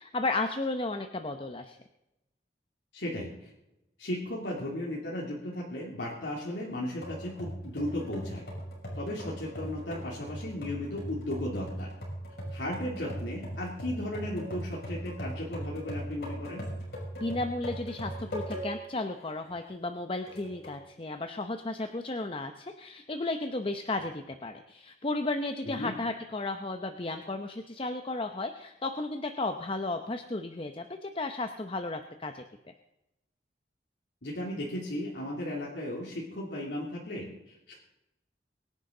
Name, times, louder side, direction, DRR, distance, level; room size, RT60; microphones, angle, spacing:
voice 1, 0.0-1.8 17.2-32.4, left 2 dB, 30° left, 6 dB, 0.8 m, -34 dB
voice 2, 2.9-3.5 4.0-8.5 9.0-11.9 12.5-16.6 25.6-25.9 34.2-37.7, left 1 dB, 90° left, -4 dB, 2.9 m, -35 dB
sound 1, 7.0-18.9 19.4-19.5 20.3-20.8, right 1 dB, 60° left, 6.2 m, -39 dB
23.5 x 10.5 x 3.9 m, 0.91 s
head